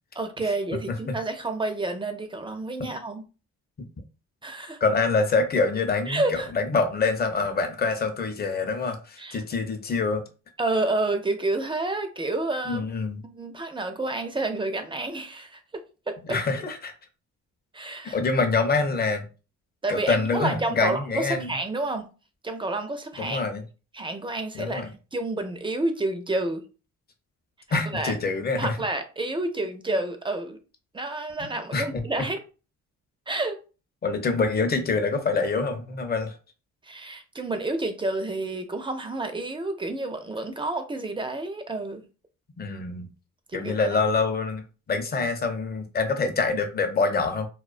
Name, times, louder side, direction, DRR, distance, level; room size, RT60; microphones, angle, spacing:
voice 1, 0.1-3.2 4.4-4.8 6.1-6.5 9.2-9.4 10.6-12.9 13.2-15.6 16.1-16.4 17.7-18.2 19.8-22.1 22.4-23.4 23.9-24.8 25.1-26.6 27.7-28.1 28.6-30.6 30.9-32.4 33.3-33.6 36.8-42.1 43.5-43.8, right 2 dB, 15° right, 0.4 m, -29 dB
voice 2, 4.8-10.2 12.7-13.2 16.2-16.9 18.1-19.3 19.9-21.6 23.2-23.6 24.5-24.9 27.7-28.8 31.4-32.0 34.0-36.4 42.6-43.1 43.5-44.6 44.9-47.5, left 4 dB, 30° left, 0.6 m, -25 dB
2.3 x 2.2 x 2.4 m
cardioid pair, 90°, 30 cm